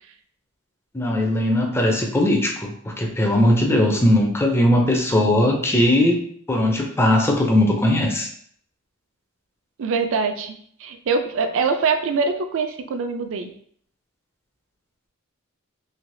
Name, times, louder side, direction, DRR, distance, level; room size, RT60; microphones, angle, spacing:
voice 1, 0.9-6.2 6.5-8.3, left 1 dB, 10° left, 1 dB, 0.4 m, -19 dB
voice 2, 9.8-10.5 10.8-13.5, right 4 dB, 65° right, 6 dB, 0.4 m, -23 dB
3.2 x 2.8 x 2.6 m, 0.63 s
head